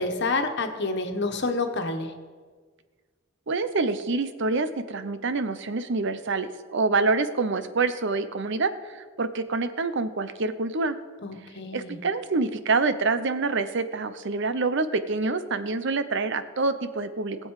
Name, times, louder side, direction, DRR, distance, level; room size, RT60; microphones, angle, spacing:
voice 1, 0.0-2.1 11.2-12.0, left 3 dB, 60° left, 5 dB, 1.4 m, -28 dB
voice 2, 3.5-10.9 11.7-17.4, right 3 dB, 60° right, 11 dB, 0.8 m, -26 dB
19.5 x 7.7 x 4.8 m, 1.5 s
head